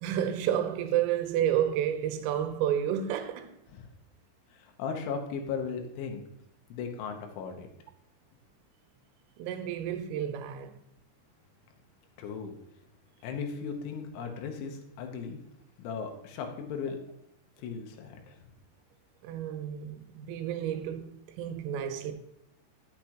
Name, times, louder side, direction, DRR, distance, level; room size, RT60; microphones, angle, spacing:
voice 1, 0.0-3.6 9.4-10.7 19.2-22.1, right 10 dB, 90° right, 3.4 m, -30 dB
voice 2, 4.5-6.2 6.7-7.7 12.2-12.6 13.2-15.4 15.8-17.0 17.6-18.4, left 6 dB, 75° left, 3.3 m, -37 dB
10.5 x 8.4 x 2.9 m
omnidirectional pair, 5.7 m